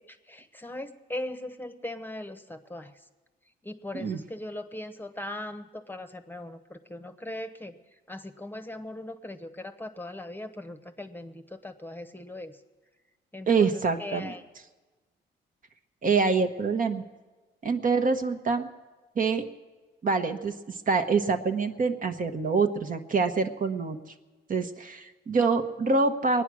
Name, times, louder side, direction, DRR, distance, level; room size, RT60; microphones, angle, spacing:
voice 1, 0.1-2.9 3.6-7.8 8.1-12.6 13.3-14.4, left 1 dB, 10° left, 8 dB, 1.0 m, -39 dB
voice 2, 13.5-14.3 16.0-17.0 17.6-18.7 19.2-19.4 20.0-24.0 24.5-26.4, right 4 dB, 45° right, 7 dB, 1.0 m, -25 dB
22.0 x 9.5 x 6.2 m, 1.3 s
cardioid pair, 90°, 20 cm